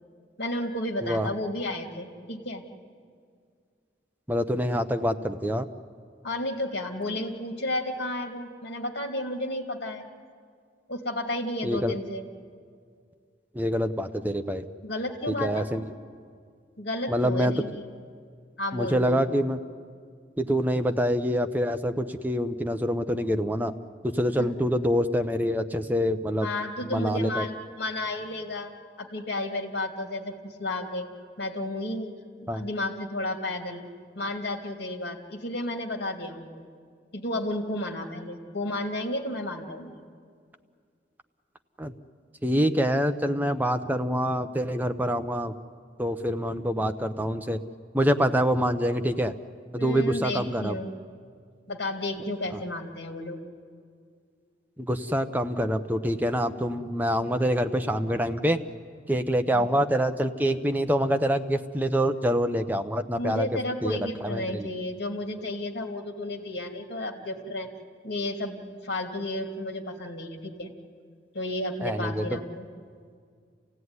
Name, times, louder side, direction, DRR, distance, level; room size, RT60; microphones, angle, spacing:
voice 1, 0.4-2.6 6.2-10.1 10.9-12.3 14.8-15.6 16.8-17.8 18.6-19.2 24.4-24.5 26.4-31.1 31.4-32.1 32.4-33.9 34.2-36.7 37.1-40.0 49.8-50.9 51.7-53.4 59.5-59.7 63.2-67.7 68.0-70.7 71.3-72.7, left 1 dB, 65° left, 3 dB, 2.5 m, -32 dB
voice 2, 4.3-5.7 11.6-12.0 13.5-14.6 15.4-15.8 17.1-17.5 18.7-19.6 20.4-23.7 24.0-26.5 26.8-27.4 32.5-32.6 41.8-41.9 42.4-45.5 46.0-47.6 47.9-49.3 49.7-50.8 54.8-58.6 59.1-63.5 63.8-64.7 71.8-72.3, equal, 10° right, 7 dB, 0.8 m, -26 dB
28.0 x 16.5 x 9.6 m, 2.1 s
head